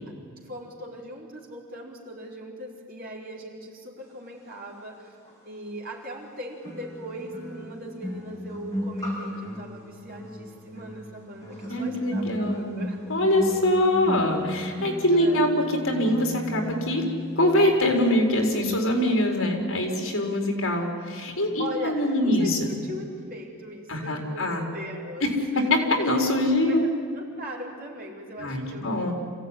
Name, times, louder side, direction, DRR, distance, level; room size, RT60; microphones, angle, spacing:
voice 1, 0.4-5.2 5.4-13.0 15.1-15.5 21.6-25.7 26.7-26.9 27.1-29.1, equal, 40° right, -1 dB, 4.2 m, -39 dB
sound 1, 5.3-5.4 6.6-17.7 18.0-18.3, equal, 15° left, 6.1 m, -35 dB
voice 2, 11.7-12.7 13.1-15.5 15.8-17.1 17.4-22.7 23.9-24.6 25.5-26.9 28.4-29.1, left 1 dB, 70° left, 2 dB, 4.5 m, -23 dB
26.5 x 16.5 x 9.9 m, 2.1 s
head